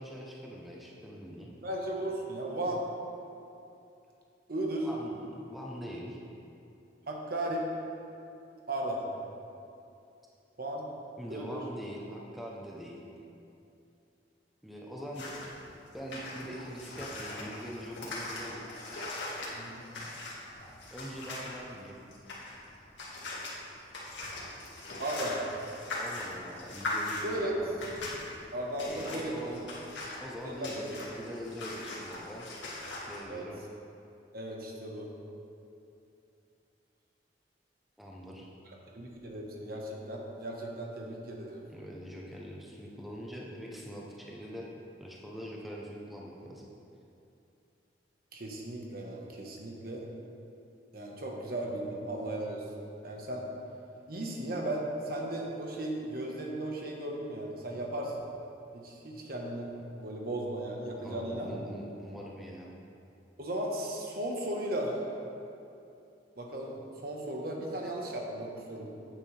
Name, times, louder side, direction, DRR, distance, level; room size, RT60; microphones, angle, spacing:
voice 1, 0.0-1.5 4.8-6.2 11.2-13.1 14.6-15.5 15.9-18.7 20.9-22.0 26.0-27.9 28.9-29.6 30.2-32.5 33.1-33.6 38.0-38.5 41.7-44.7 45.0-46.7 60.8-62.7, equal, ahead, -3 dB, 0.7 m, -43 dB
voice 2, 1.6-2.9 4.5-4.9 7.1-7.7 8.7-9.1 10.6-10.9 11.3-11.6 19.5-19.8 25.0-25.4 27.2-27.6 28.5-29.5 30.4-30.7 33.3-33.5 34.3-35.1 38.7-41.6 48.3-50.0 50.9-52.7 53.0-53.4 54.1-58.2 58.7-59.7 60.0-61.5 63.4-65.1 66.4-68.9, right 1 dB, 55° right, -1 dB, 1.2 m, -36 dB
sound 1, 15.1-33.2, left 2 dB, 85° left, 1.9 m, -41 dB
8.9 x 8.9 x 3.3 m, 2.7 s
head